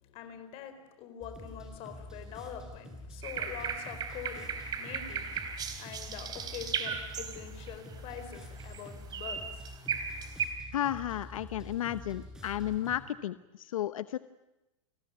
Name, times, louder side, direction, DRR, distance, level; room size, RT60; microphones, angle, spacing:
voice 1, 0.0-5.5 5.8-9.8, left 9 dB, 35° left, 9 dB, 4.4 m, -45 dB
sound 1, 1.2-13.0, equal, 5° right, 5.7 m, -47 dB
sound 2, 3.2-7.7 8.2-8.8 9.1-10.5, right 7 dB, 25° right, 3.9 m, -36 dB
voice 2, 10.7-14.2, left 12 dB, 80° left, 14 dB, 0.9 m, -33 dB
29.5 x 20.5 x 9.5 m, 0.98 s
supercardioid pair, 145°, 17 cm